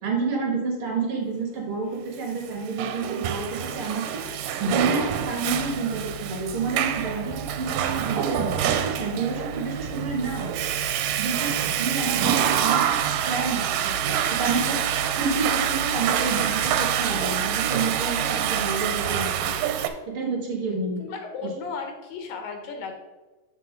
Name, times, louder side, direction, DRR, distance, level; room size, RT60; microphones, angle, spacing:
voice 1, 0.0-10.5 11.2-12.9 13.2-19.5 20.1-21.0 21.4-21.5, right 4 dB, 60° right, 1 dB, 1.5 m, -29 dB
Water / Toilet flush, 2.4-19.9, right 9 dB, 85° right, 2.2 m, -26 dB
voice 2, 21.0-22.9, left 4 dB, 80° left, 4 dB, 2.8 m, -35 dB
7.3 x 6.5 x 3.8 m, 1.1 s
omnidirectional pair, 3.9 m